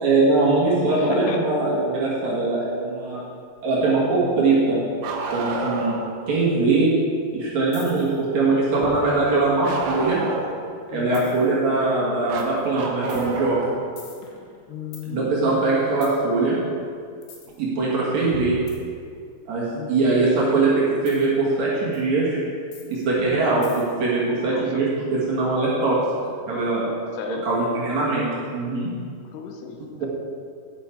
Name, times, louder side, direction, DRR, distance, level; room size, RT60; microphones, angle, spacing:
voice 1, 0.0-3.2 3.6-4.8 5.3-6.0 6.3-6.9 7.3-10.2 10.9-13.6 15.1-16.6 17.6-18.6 19.5-22.4 22.9-26.0 26.5-26.9 27.3-28.3 28.5-28.9 30.0-30.1, right 3 dB, 55° right, -6 dB, 2.5 m, -21 dB
voice 2, 0.9-1.5 10.9-11.3 14.7-16.0 19.7-20.6 24.5-24.8 27.1-27.5 29.3-30.1, left 7 dB, 90° left, 5 dB, 2.9 m, -35 dB
Bark, 5.0-6.1 9.6-10.7 12.3-13.8 15.5-15.6 17.5-17.6 18.7-18.8, right 2 dB, 80° right, 1.6 m, -29 dB
sound 1, 7.7-8.2 8.8-10.4 11.1-11.6 12.4-12.6 13.1-15.1 16.0-16.2 17.2-17.6 18.3-19.5 21.1-21.3 21.9-22.0 22.7-24.1, left 3 dB, 70° left, 2.7 m, -42 dB
9.6 x 8.3 x 4.6 m, 2.2 s
omnidirectional pair, 4.7 m